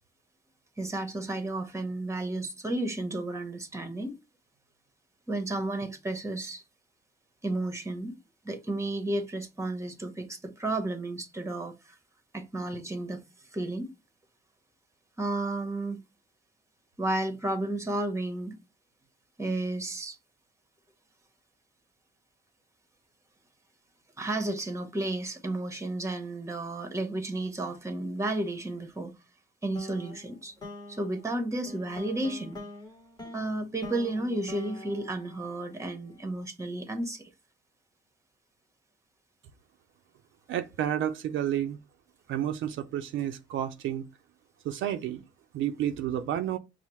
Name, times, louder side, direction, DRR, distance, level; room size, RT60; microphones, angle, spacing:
voice 1, 0.8-4.1 5.3-6.6 7.4-8.1 8.4-11.9 12.3-13.2 13.5-13.9 15.2-16.0 17.0-18.6 19.4-20.2 24.2-29.1 29.6-30.5 30.9-32.6 33.3-37.3, right 2 dB, 15° right, 0.9 m, -32 dB
sound 1, 29.8-36.2, left 2 dB, 20° left, 1.1 m, -45 dB
voice 2, 40.5-41.8 42.3-44.0 44.6-45.2 45.5-46.6, right 10 dB, 75° right, 0.5 m, -30 dB
5.6 x 2.0 x 3.0 m
cardioid pair, 90°, 20 cm